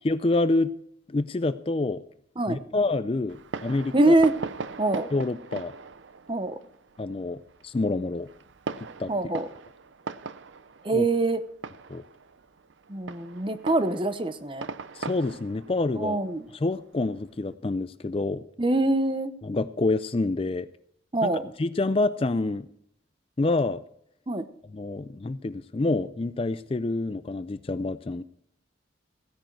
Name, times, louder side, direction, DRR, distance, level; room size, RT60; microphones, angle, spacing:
voice 1, 0.0-0.7 1.1-2.0 2.5-4.1 5.1-5.7 7.0-8.3 9.0-9.1 10.9-11.1 11.9-12.0 14.9-16.2 16.5-18.5 19.4-20.7 21.2-21.3 21.6-22.7 23.4-23.8 24.7-28.2, left 2 dB, 30° left, 14 dB, 0.4 m, -27 dB
Fireworks, 3.3-17.4, right 4 dB, 75° right, 0.6 m, -40 dB
voice 2, 3.9-4.3 4.8-5.1 6.3-6.6 9.1-9.4 10.8-11.4 12.9-14.7 16.0-16.5 18.6-19.3 21.1-21.4 24.3-24.5, right 2 dB, 25° right, 11 dB, 0.8 m, -24 dB
15.5 x 10.5 x 4.6 m, 0.68 s
head